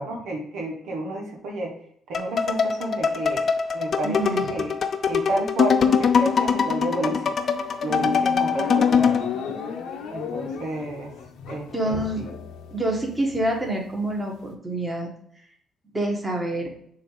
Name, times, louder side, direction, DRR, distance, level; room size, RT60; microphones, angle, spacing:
voice 1, 0.0-1.7 2.1-3.5 3.7-4.7 5.1-7.3 7.8-9.2 10.1-11.1 11.5-12.3, right 1 dB, 80° right, 0 dB, 1.3 m, -31 dB
sound 1, 2.1-9.3, left 6 dB, 50° left, 0.6 m, -22 dB
voice 2, 4.0-4.5 11.7-12.3 12.7-15.1 15.9-16.7, right 1 dB, 15° right, 0 dB, 1.8 m, -27 dB
sound 2, 7.4-14.5, left 6 dB, 85° left, 0.9 m, -33 dB
7.0 x 2.9 x 4.9 m, 0.67 s
cardioid pair, 90°, 0 cm